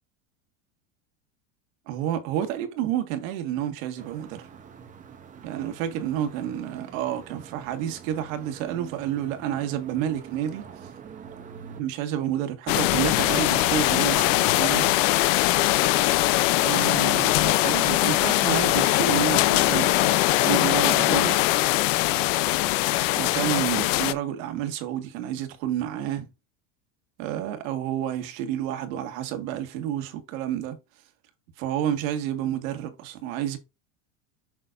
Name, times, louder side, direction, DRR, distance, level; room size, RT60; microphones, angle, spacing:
voice 1, 1.9-4.4 5.4-10.9 11.7-14.9 16.6-21.4 23.2-26.3 27.2-30.8 31.6-33.6, right 11 dB, 70° right, 1.8 m, -30 dB
sound 1, 4.0-11.8, right 7 dB, 20° right, 0.8 m, -45 dB
sound 2, 12.7-24.1, left 17 dB, 65° left, 0.7 m, -21 dB
7.4 x 6.0 x 2.5 m
cardioid pair, 170°, 42 cm